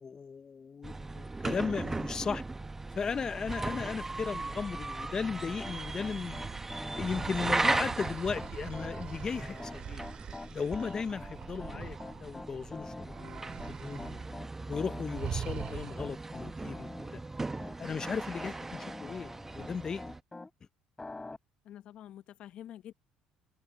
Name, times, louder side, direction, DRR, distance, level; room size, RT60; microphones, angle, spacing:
voice 1, 0.0-2.4 2.9-6.4 6.9-10.1 10.5-13.4 13.8-14.2 14.7-17.2 17.8-20.1, left 5 dB, 35° left, 0.6 m, -36 dB
sound 1, 0.8-20.2, right 3 dB, 15° right, 1.0 m, -38 dB
Piano, 5.3-20.5 21.0-21.4, left 2 dB, 15° left, 3.1 m, -46 dB
sound 2, 5.5-12.7 13.1-14.4 14.6-14.8 15.1-16.3, right 9 dB, 50° right, 2.8 m, -44 dB
voice 2, 11.7-12.3 21.6-22.9, left 11 dB, 60° left, 0.9 m, -49 dB
open air
supercardioid pair, 75°, 2 cm